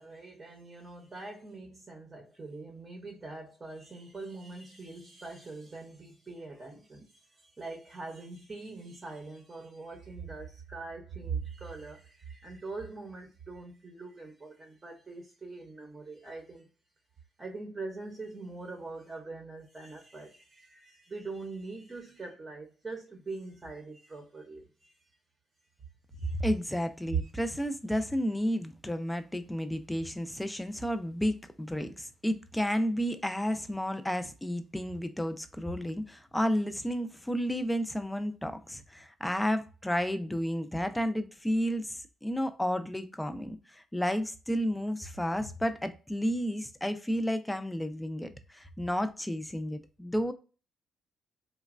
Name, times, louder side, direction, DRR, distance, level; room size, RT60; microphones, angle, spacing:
voice 1, 0.0-16.7 17.4-24.9 26.2-26.4 27.2-27.3, right 3 dB, 30° right, 0.7 m, -43 dB
voice 2, 26.2-50.3, equal, 10° left, 0.4 m, -32 dB
3.1 x 2.1 x 2.4 m
cardioid pair, 90°, 0 cm